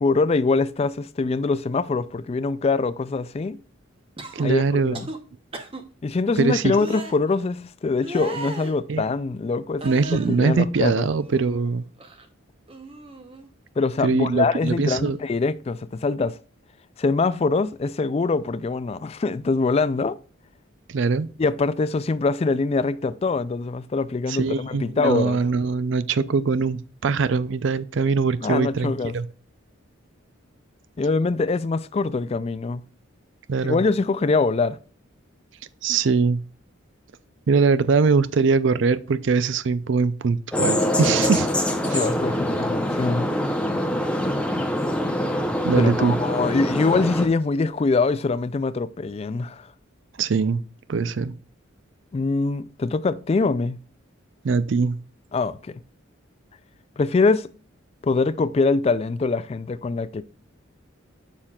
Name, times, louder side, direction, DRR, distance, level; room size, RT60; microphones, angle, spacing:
voice 1, 0.0-3.6 4.4-5.1 6.0-9.9 10.3-11.1 13.8-16.4 17.0-20.2 21.4-25.4 28.4-29.1 31.0-32.8 33.6-34.8 41.9-43.3 45.8-49.7 52.1-53.8 55.3-55.7 57.0-57.5 58.0-60.2, left 3 dB, 30° left, 0.3 m, -23 dB
sound 1, 4.2-4.5 4.9-5.2 5.5-5.8 6.7-7.1 8.0-8.7 9.8-10.4 10.9-11.7 12.0-12.3 12.7-13.5 14.7-14.9, right 2 dB, 30° right, 0.8 m, -37 dB
voice 2, 4.3-5.0 6.4-6.7 8.9-9.0 9.8-11.9 14.0-15.2 20.9-21.3 24.3-29.3 33.5-33.8 35.8-36.4 37.5-41.5 41.9-42.0 45.6-46.2 50.2-50.6 50.9-51.3 54.4-55.0, right 4 dB, 65° right, 0.4 m, -22 dB
sound 2, 40.5-47.3, left 1 dB, 5° left, 0.7 m, -24 dB
7.2 x 6.6 x 2.3 m
head